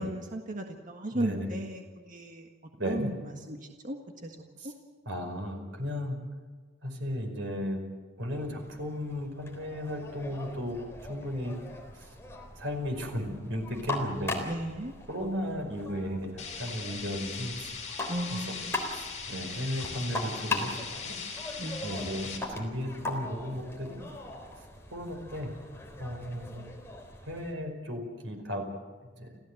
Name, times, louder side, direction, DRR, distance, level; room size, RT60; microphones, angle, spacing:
voice 1, 0.0-2.5 2.9-3.2 3.5-4.4 4.6-4.7 14.5-14.9 18.1-18.8 21.6-21.8, right 1 dB, 45° right, 3 dB, 1.7 m, -35 dB
voice 2, 1.1-1.5 2.8-3.1 4.6-4.7 5.0-6.2 6.8-7.8 8.2-10.8 11.1-11.5 11.9-12.0 12.6-14.4 15.1-17.6 18.3-18.5 18.9-20.8 21.0-21.1 21.8-24.0 24.9-25.5 26.0-26.8 27.3-28.6 29.2-29.3, equal, 90° right, 4 dB, 5.2 m, -35 dB
sound 1, 8.3-27.5, left 2 dB, 15° left, 3.8 m, -40 dB
sound 2, 16.4-22.4, left 5 dB, 40° left, 5.5 m, -40 dB
29.5 x 15.0 x 7.9 m, 1.4 s
head